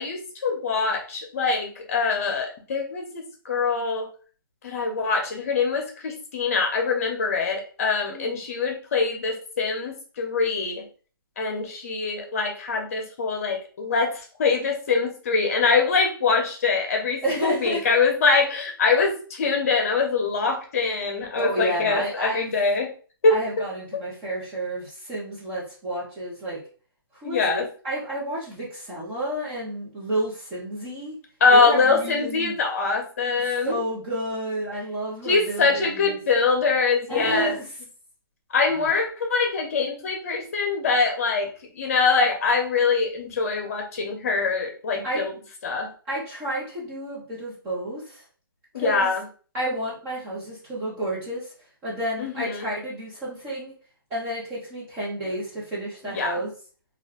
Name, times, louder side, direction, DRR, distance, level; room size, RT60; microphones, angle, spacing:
voice 1, 0.0-3.0 3.4-4.1 4.6-10.8 11.4-22.9 23.2-23.4 27.2-27.7 31.4-33.8 35.2-37.5 38.5-41.5 41.8-45.3 45.6-45.9 48.7-49.2 52.2-52.7 55.2-55.3 56.0-56.4, left 4 dB, 40° left, 3 dB, 0.8 m, -23 dB
voice 2, 8.1-8.4 17.2-17.8 21.3-22.5 23.3-26.6 27.2-31.2 31.5-32.6 33.3-36.2 37.1-37.7 38.7-38.9 45.0-45.2 46.1-48.2 48.8-49.1 49.5-51.5 51.8-53.8 54.1-56.5, right 1 dB, 10° right, -6 dB, 0.4 m, -30 dB
2.4 x 2.1 x 3.4 m, 0.40 s
hypercardioid pair, 170°, 12 cm